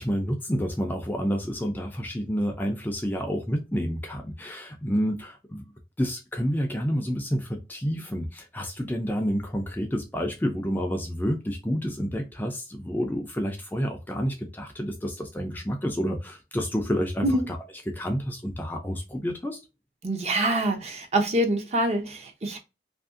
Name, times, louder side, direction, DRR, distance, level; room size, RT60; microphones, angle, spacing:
voice 1, 0.0-5.6 6.0-17.6 17.9-19.6, equal, 10° left, 0.3 m, -29 dB
voice 2, 20.0-22.6, right 1 dB, 35° right, 0.6 m, -25 dB
2.7 x 2.5 x 2.4 m
head